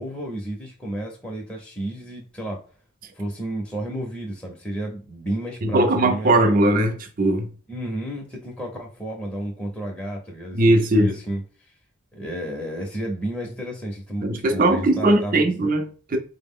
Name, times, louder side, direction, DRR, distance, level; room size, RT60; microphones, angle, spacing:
voice 1, 0.0-2.6 3.1-6.7 7.7-11.4 12.1-15.5, right 1 dB, 5° left, 0.6 m, -31 dB
voice 2, 5.6-7.5 10.5-11.1 14.2-16.2, right 1 dB, 40° right, 0.5 m, -19 dB
4.5 x 2.0 x 3.6 m
head